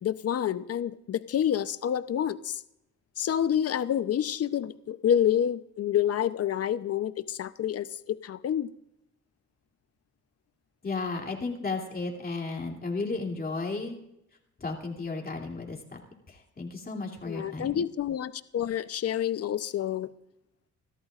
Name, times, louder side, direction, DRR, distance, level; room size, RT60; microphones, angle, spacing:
voice 1, 0.0-2.6 3.2-8.7 17.3-20.1, left 10 dB, 50° left, 13 dB, 0.8 m, -28 dB
voice 2, 10.8-14.0 14.6-16.0 16.3-17.7, left 3 dB, 30° left, 1 dB, 3.0 m, -34 dB
27.5 x 13.0 x 2.5 m, 0.82 s
cardioid pair, 90°, 30 cm